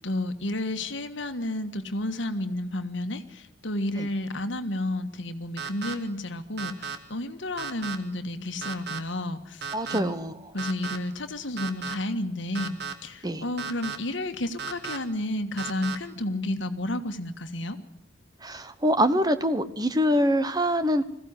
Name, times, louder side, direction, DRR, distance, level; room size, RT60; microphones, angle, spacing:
voice 1, 0.0-9.6 9.9-10.1 10.5-17.8, left 1 dB, 70° left, 8 dB, 1.6 m, -31 dB
sound 1, 5.6-5.9 6.6-7.0 7.6-8.0 8.6-9.0 9.6-10.0 10.6-11.0 11.6-11.9 12.5-12.9 13.6-14.0 14.6-15.0 15.6-16.0, right 5 dB, 55° right, 1.8 m, -34 dB
voice 2, 9.7-10.5 13.2-13.5 18.4-21.0, equal, 20° right, 11 dB, 1.1 m, -25 dB
21.0 x 15.5 x 9.7 m, 0.74 s
head